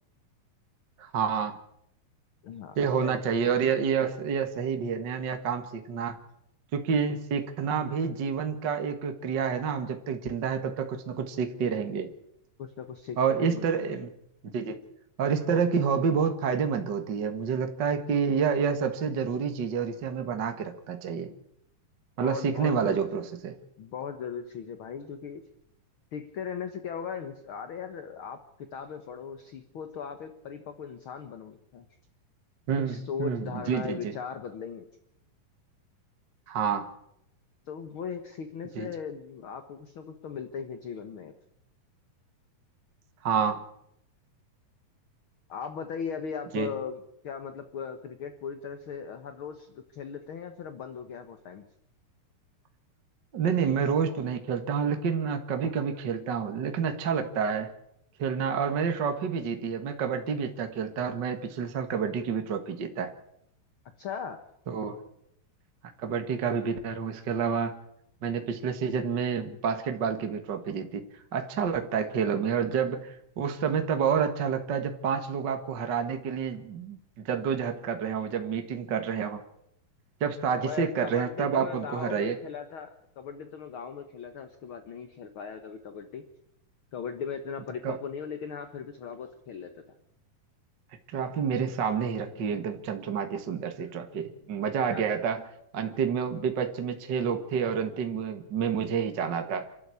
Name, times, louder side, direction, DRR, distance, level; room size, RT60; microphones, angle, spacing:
voice 1, 1.0-1.5 2.8-6.2 6.7-12.1 13.2-14.1 14.4-14.8 15.2-21.3 22.2-23.6 32.7-34.1 36.5-36.9 38.8-38.9 43.2-43.6 46.5-46.7 53.3-57.7 58.2-63.1 64.7-65.0 66.0-67.8 68.2-79.4 80.2-82.4 87.8-88.0 91.1-95.4 95.7-99.7, right 6 dB, 45° right, 6 dB, 1.7 m, -29 dB
voice 2, 2.4-3.1 12.6-14.0 22.2-23.2 23.8-25.4 26.1-31.9 32.8-34.9 37.7-41.3 45.5-51.6 64.0-64.4 80.6-86.2 86.9-89.7 94.9-95.1, left 6 dB, 50° left, 8 dB, 1.7 m, -38 dB
27.5 x 12.5 x 8.5 m, 0.76 s
omnidirectional pair, 3.8 m